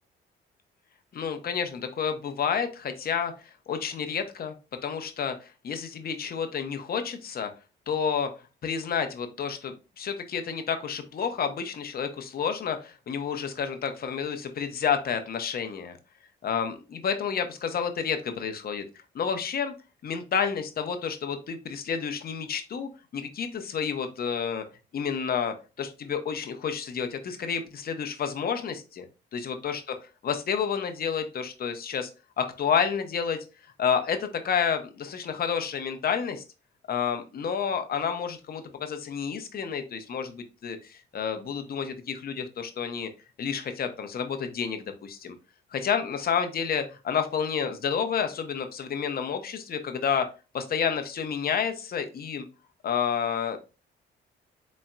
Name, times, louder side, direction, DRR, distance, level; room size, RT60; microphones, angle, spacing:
voice 1, 1.1-3.3 3.7-4.5 4.8-7.5 7.9-8.3 8.6-15.9 16.4-18.8 19.1-19.7 20.0-24.6 24.9-29.0 29.3-30.0 30.2-32.1 32.4-33.4 33.8-36.4 36.9-43.1 43.4-45.3 45.7-50.3 50.5-52.4 52.8-53.6, left 7 dB, 50° left, 7 dB, 0.8 m, -30 dB
4.1 x 3.6 x 2.2 m, 0.31 s
cardioid pair, 90°, 20 cm